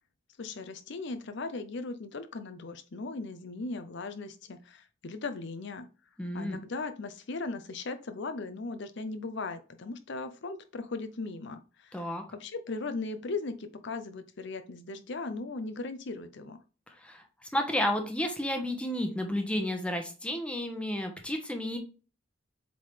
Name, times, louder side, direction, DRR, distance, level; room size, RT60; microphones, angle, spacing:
voice 1, 0.4-5.8 6.3-12.1 12.4-16.6, left 3 dB, 60° left, 9 dB, 0.6 m, -38 dB
voice 2, 6.2-6.6 11.9-12.2 17.0-17.2 17.5-21.8, left 1 dB, 5° left, 3 dB, 1.0 m, -31 dB
7.7 x 3.8 x 3.3 m, 0.35 s
head